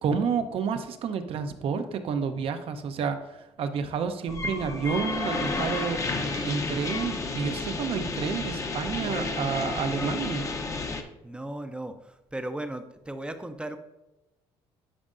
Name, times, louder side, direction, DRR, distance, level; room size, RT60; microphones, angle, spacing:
voice 1, 0.0-6.0 6.4-10.5, right 6 dB, 60° right, 8 dB, 0.7 m, -30 dB
sound 1, 4.3-11.0, left 3 dB, 30° left, 0.7 m, -31 dB
voice 2, 11.2-13.8, right 1 dB, 10° right, 8 dB, 0.5 m, -36 dB
11.0 x 5.2 x 2.6 m, 0.97 s
cardioid pair, 95°, 11 cm